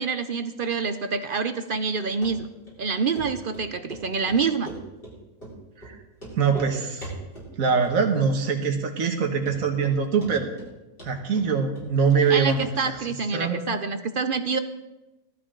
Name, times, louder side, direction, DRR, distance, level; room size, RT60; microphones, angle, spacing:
voice 1, 0.0-2.5 2.8-4.7 12.3-14.6, right 5 dB, 50° right, 10 dB, 0.7 m, -27 dB
Run, 2.2-2.3 2.7-2.8 3.1-3.3 3.5-4.0 4.3-5.1 5.4-5.5 5.8-5.9 6.2-6.7 7.0-7.5 7.8-8.3 8.6-8.7 9.1-9.2 9.5-10.0 10.2-10.7 11.0-12.2 12.5-12.6 12.9-13.0, right 1 dB, 40° left, 4.7 m, -40 dB
voice 2, 6.3-7.1 7.5-10.5 11.0-12.9 13.3-13.6, right 5 dB, 70° right, 3 dB, 1.8 m, -23 dB
16.5 x 12.5 x 3.8 m, 1.0 s
omnidirectional pair, 1.5 m